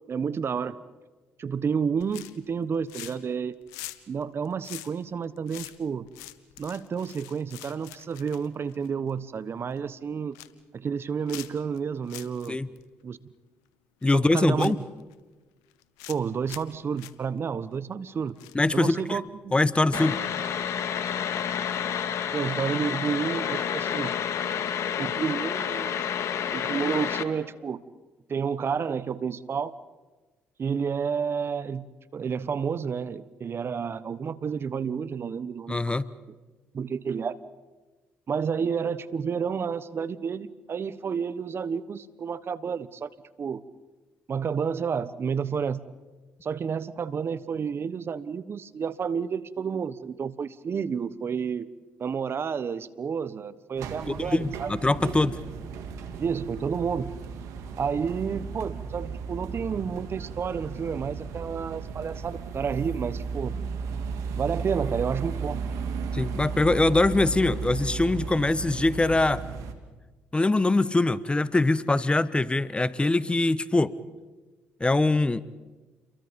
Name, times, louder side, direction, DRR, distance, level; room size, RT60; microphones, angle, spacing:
voice 1, 0.1-0.7 1.4-3.6 4.1-6.1 6.6-10.4 10.7-12.6 13.0-13.2 14.1-14.8 16.1-18.4 18.7-19.6 19.9-20.2 22.3-24.1 25.0-26.0 26.5-27.8 28.3-29.8 30.6-31.9 32.1-35.9 36.7-37.4 38.3-43.1 43.4-43.6 44.3-45.8 46.4-51.7 52.0-54.7 56.2-57.1 57.8-63.6 64.4-65.6, right 6 dB, 50° right, 16 dB, 1.2 m, -30 dB
sound 1, 2.0-2.5 2.8-3.3 3.6-9.2 9.6-9.8 10.1-10.6 11.3-11.8 12.1-12.5 12.8-12.9 14.0-14.1 14.6-15.1 15.7-16.2 16.5-16.7 17.0-17.1 18.4-18.8 19.2-19.3, left 16 dB, 85° left, 1.1 m, -43 dB
voice 2, 14.0-14.8 18.5-19.2 19.5-20.2 35.7-36.1 54.1-55.4 66.1-69.4 70.3-73.9 74.8-75.4, left 2 dB, 20° left, 16 dB, 1.1 m, -23 dB
sound 2, 19.9-27.2, left 8 dB, 65° left, 1.9 m, -29 dB
sound 3, 53.8-69.7, right 5 dB, 75° right, 2.4 m, -35 dB
29.0 x 23.0 x 5.4 m, 1.3 s
supercardioid pair, 60°, 5 cm